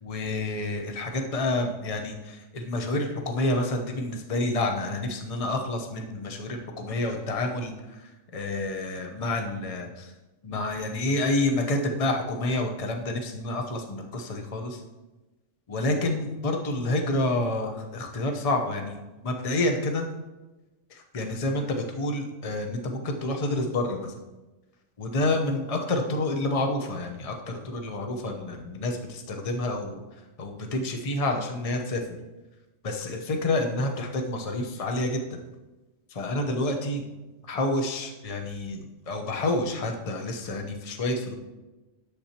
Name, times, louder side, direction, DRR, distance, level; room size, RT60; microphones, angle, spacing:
voice 1, 0.0-10.1 10.4-14.8 15.7-20.1 20.9-24.1 25.0-30.0 30.4-32.2 32.8-35.2 36.1-37.0 37.4-41.3, left 2 dB, 30° left, 3 dB, 0.8 m, -29 dB
10.0 x 7.6 x 2.9 m, 1.1 s
omnidirectional pair, 1.4 m